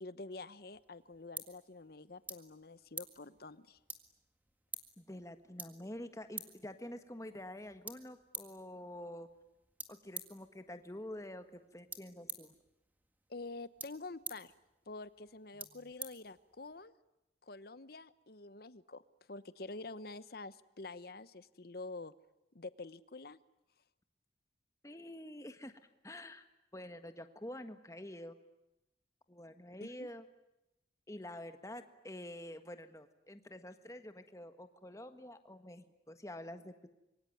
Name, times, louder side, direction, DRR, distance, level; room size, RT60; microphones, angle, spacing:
voice 1, 0.0-3.8 13.3-14.5 14.9-16.9 17.4-19.0 19.3-22.1 22.5-23.4 29.8-30.1, left 3 dB, 55° left, 15 dB, 1.0 m, -47 dB
sound 1, 0.6-16.9, right 3 dB, 10° right, 1.8 m, -51 dB
voice 2, 5.0-9.3 9.9-12.6 24.8-26.4 26.7-28.4 29.3-30.2 31.1-36.9, left 1 dB, 15° left, 9 dB, 1.6 m, -48 dB
26.0 x 23.5 x 9.4 m, 0.94 s
head